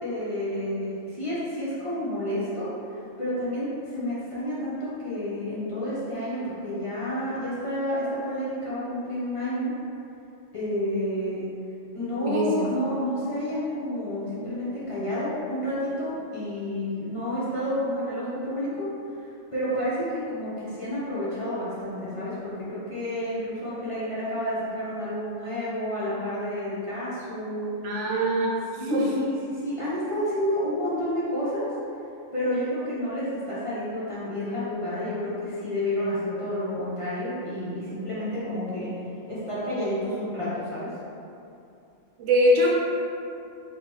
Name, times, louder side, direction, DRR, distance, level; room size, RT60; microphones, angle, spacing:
voice 1, 0.0-9.7 10.5-11.4 11.9-18.9 19.5-27.7 28.8-31.7 32.3-38.9 39.3-40.9, left 1 dB, 30° left, -11 dB, 0.7 m, -30 dB
voice 2, 27.8-28.5 28.9-29.1 42.2-42.7, equal, 70° right, -4 dB, 0.9 m, -22 dB
3.8 x 3.1 x 3.0 m, 2.6 s
omnidirectional pair, 1.4 m